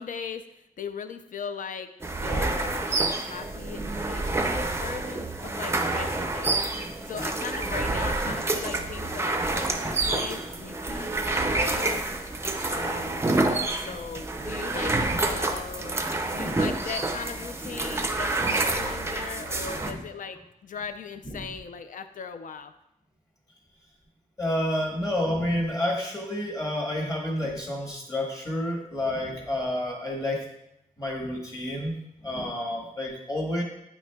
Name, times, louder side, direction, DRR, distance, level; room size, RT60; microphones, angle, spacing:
voice 1, 0.0-1.9 2.2-6.6 7.1-12.0 12.6-15.0 15.2-22.7, left 6 dB, 65° left, 9 dB, 0.4 m, -39 dB
sound 1, 2.0-19.9, right 2 dB, 20° right, 0.4 m, -28 dB
voice 2, 19.6-20.0 21.2-21.4 24.4-30.4 31.0-33.6, left 1 dB, 25° left, 0 dB, 1.2 m, -30 dB
8.9 x 5.9 x 2.2 m, 0.82 s
wide cardioid pair, 170°, 14 cm